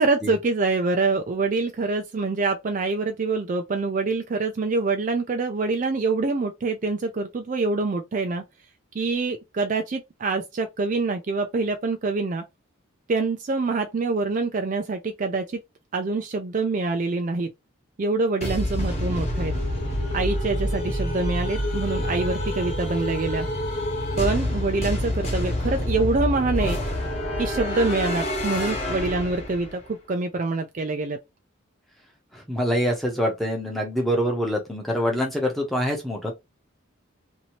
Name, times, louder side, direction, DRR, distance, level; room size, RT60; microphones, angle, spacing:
voice 1, 0.0-8.4 8.9-12.4 13.1-15.4 15.9-17.5 18.0-19.5 20.1-23.5 24.2-26.8 27.4-29.8 30.1-31.2, right 3 dB, 40° right, 0.3 m, -25 dB
sound 1, 18.4-29.8, left 1 dB, 30° left, 1.1 m, -27 dB
voice 2, 32.3-36.3, equal, ahead, 0.8 m, -25 dB
2.8 x 2.6 x 2.9 m
head